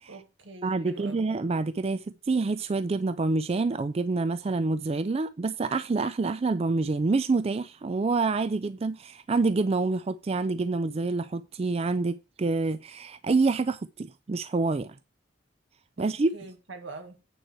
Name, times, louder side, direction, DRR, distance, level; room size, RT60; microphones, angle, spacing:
voice 1, 0.1-1.2 16.0-17.2, right 3 dB, 80° right, 1.7 m, -44 dB
voice 2, 0.6-14.9 16.0-16.3, right 3 dB, 30° right, 0.4 m, -27 dB
9.2 x 4.5 x 6.1 m
head